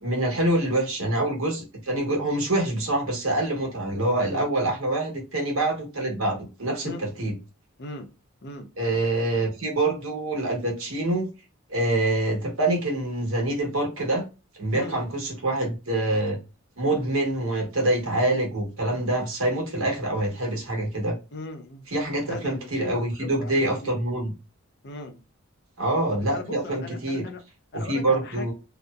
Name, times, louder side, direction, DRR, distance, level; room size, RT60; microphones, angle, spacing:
voice 1, 0.0-6.9 7.2-7.3 8.8-11.3 11.7-14.2 14.6-16.4 16.8-21.2 21.9-24.3 25.8-27.2 27.7-28.5, right 2 dB, 65° right, 1.1 m, -25 dB
voice 2, 7.8-8.1 8.4-8.7 14.7-15.0 21.3-21.9 22.2-24.1 24.8-25.2 26.1-27.4 27.7-28.5, left 3 dB, 50° left, 0.6 m, -38 dB
2.7 x 2.1 x 2.2 m
head